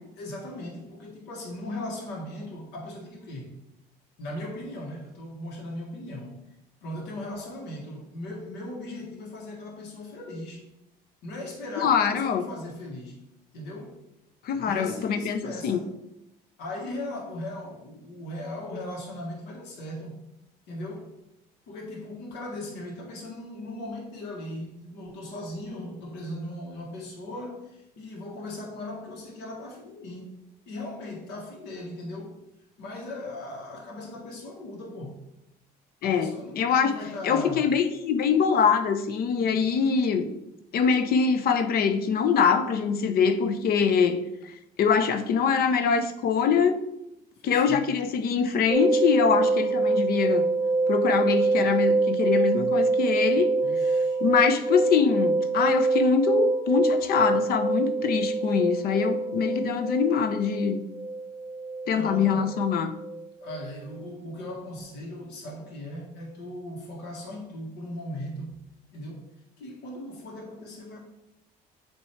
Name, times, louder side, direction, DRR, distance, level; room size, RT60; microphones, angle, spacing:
voice 1, 0.2-3.5 4.2-6.4 6.8-10.7 11.2-13.2 13.5-14.0 14.6-15.9 16.6-20.2 20.7-21.1 21.7-30.3 30.7-32.4 32.8-35.2 36.0-37.7 47.4-47.9 53.6-54.2 61.9-62.6 63.4-68.5 68.9-71.0, left 1 dB, 90° left, -1 dB, 1.6 m, -38 dB
voice 2, 11.8-12.4 14.4-15.8 36.0-36.9 37.2-40.3 40.7-44.2 44.4-44.5 44.8-46.8 47.4-50.5 50.9-53.5 54.2-60.9 61.9-62.9, left 6 dB, 65° left, 9 dB, 0.7 m, -24 dB
sound 1, 48.7-63.6 63.9-64.0, right 3 dB, 35° right, 1.0 m, -25 dB
7.8 x 3.0 x 4.4 m, 0.86 s
cardioid pair, 110°, 17 cm